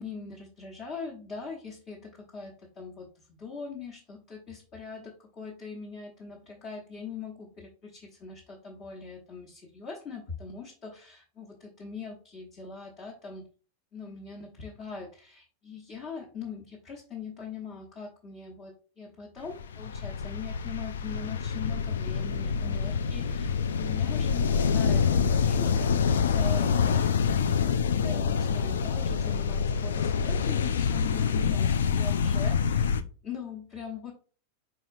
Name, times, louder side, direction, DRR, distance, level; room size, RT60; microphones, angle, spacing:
voice 1, 0.0-13.5 13.9-27.0 27.4-34.1, left 5 dB, 30° left, -2 dB, 1.0 m, -41 dB
sound 1, 19.5-33.0, left 6 dB, 65° left, 0.3 m, -26 dB
4.9 x 4.1 x 2.6 m, 0.40 s
figure-of-eight pair, 90°, 0 cm